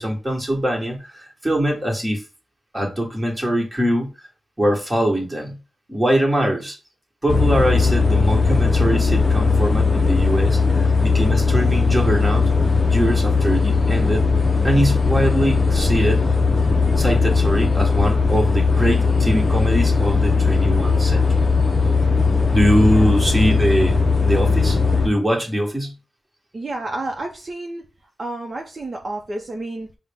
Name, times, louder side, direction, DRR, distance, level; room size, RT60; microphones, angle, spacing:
voice 1, 0.0-2.2 2.7-4.1 4.6-5.6 5.9-6.8 7.2-12.5 12.9-14.3 14.6-16.2 17.0-21.4 22.5-24.8 25.0-25.9, equal, 10° right, -1 dB, 1.3 m, -22 dB
sound 1, 7.3-25.1, left 4 dB, 35° left, 0.6 m, -18 dB
voice 2, 22.7-23.2 26.5-27.8 28.2-29.9, right 2 dB, 40° right, 2 dB, 0.6 m, -30 dB
5.5 x 2.1 x 3.5 m, 0.31 s
wide cardioid pair, 100°, 0 cm